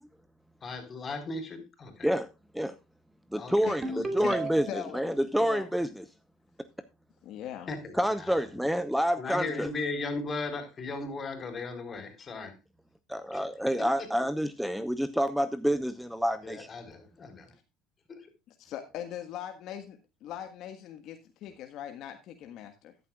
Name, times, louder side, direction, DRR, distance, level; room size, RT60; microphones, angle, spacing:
voice 1, 0.6-2.1 3.3-4.4 7.7-8.6 9.2-12.6 13.3-13.4 13.8-14.3 16.4-17.5 18.1-18.3, left 3 dB, 35° left, 4.5 m, -37 dB
voice 2, 3.3-3.9 4.1-6.0 8.0-9.7 13.1-16.7, equal, ahead, 0.8 m, -28 dB
Ringtone, 3.8-5.0, right 2 dB, 25° right, 2.5 m, -34 dB
voice 3, 4.7-5.7 7.2-7.7 18.6-22.9, left 10 dB, 60° left, 1.5 m, -40 dB
13.5 x 11.0 x 2.4 m
supercardioid pair, 85°, 0 cm